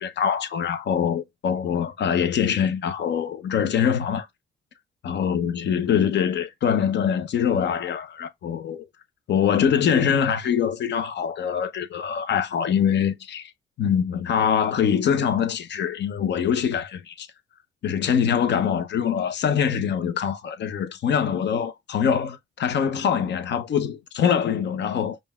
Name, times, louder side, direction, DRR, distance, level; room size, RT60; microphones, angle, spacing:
voice 1, 0.0-4.3 5.0-8.9 9.3-13.5 13.8-17.3 17.8-25.2, left 8 dB, 60° left, 0.8 m, -24 dB
5.3 x 2.6 x 2.3 m
cardioid pair, 90°, 20 cm